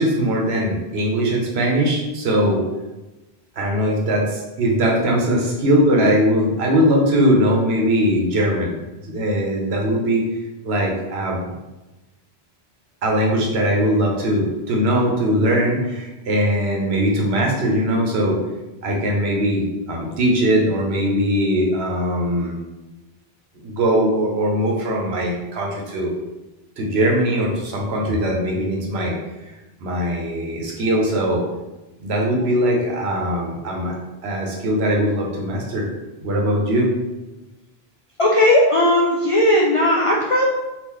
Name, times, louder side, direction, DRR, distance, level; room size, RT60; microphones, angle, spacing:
voice 1, 0.0-2.6 3.6-8.7 9.1-10.3 10.6-11.5 13.0-18.4 18.8-22.5 23.5-26.1 26.8-29.2 29.8-31.4 32.0-33.9 34.2-35.9 36.2-36.9, equal, 90° right, -1 dB, 1.0 m, -20 dB
voice 2, 38.2-40.4, left 1 dB, 55° left, -4 dB, 0.3 m, -16 dB
2.9 x 2.4 x 3.6 m, 1.1 s
omnidirectional pair, 1.0 m